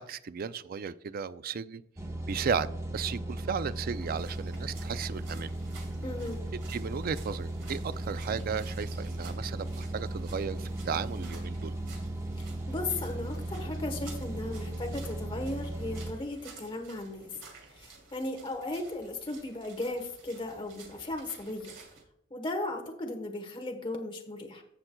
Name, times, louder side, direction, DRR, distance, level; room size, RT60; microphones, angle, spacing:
voice 1, 0.0-1.8 2.3-5.5 6.7-11.7, right 6 dB, 50° right, 0.4 m, -35 dB
sound 1, 2.0-16.1, right 1 dB, 15° right, 0.9 m, -36 dB
sound 2, 4.0-22.0, right 4 dB, 70° right, 2.7 m, -53 dB
voice 2, 6.0-6.4 12.7-17.3 17.7-21.7 22.3-24.6, left 2 dB, 25° left, 1.1 m, -36 dB
15.5 x 5.8 x 2.2 m
head